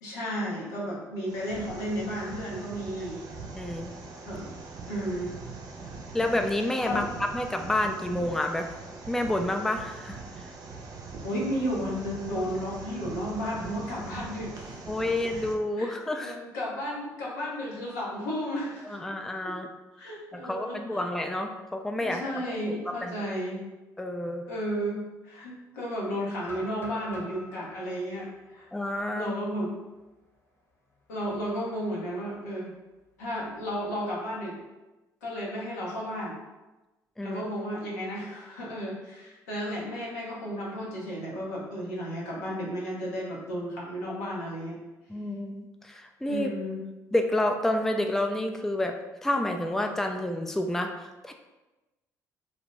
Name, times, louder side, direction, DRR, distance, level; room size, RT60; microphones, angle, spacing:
voice 1, 0.0-3.2 4.3-4.5 4.9-5.3 6.8-7.1 11.2-14.8 15.0-15.4 15.8-15.9 16.2-19.0 19.4-19.5 20.0-21.0 22.0-23.6 24.5-28.7 29.1-29.7 31.1-32.7 33.2-34.6 35.2-36.3 37.2-44.8 46.3-46.8, equal, 85° left, -5 dB, 0.7 m, -33 dB
sound 1, 1.2-15.5, right 4 dB, 50° right, 0.5 m, -42 dB
voice 2, 3.5-3.9 6.1-7.1 7.3-8.7 9.1-10.2 14.9-16.4 18.9-19.7 20.0-22.7 23.0-23.1 24.0-24.4 28.7-29.3 37.2-37.4 45.1-46.5 47.1-51.3, left 1 dB, 5° left, 4 dB, 0.3 m, -29 dB
sound 2, 26.4-30.3 30.7-30.8 31.3-31.6 32.9-33.8, left 1 dB, 30° left, 0.8 m, -48 dB
2.6 x 2.1 x 3.0 m, 1.1 s
hypercardioid pair, 55°, 9 cm